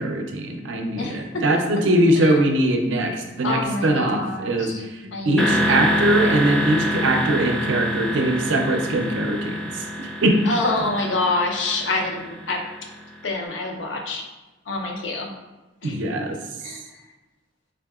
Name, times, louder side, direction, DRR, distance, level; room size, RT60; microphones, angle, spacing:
voice 1, 0.0-4.9 5.3-10.4 15.8-16.4, right 1 dB, 80° right, 3 dB, 0.5 m, -22 dB
voice 2, 1.0-1.4 2.2-2.3 3.4-4.8 5.1-5.8 10.4-12.6 13.2-14.2 14.7-15.3 15.8-16.0 16.6-16.8, left 2 dB, 75° left, 1 dB, 0.6 m, -26 dB
sound 1, 5.4-13.2, equal, 5° left, 0.4 m, -26 dB
3.6 x 2.7 x 2.3 m, 1.1 s
head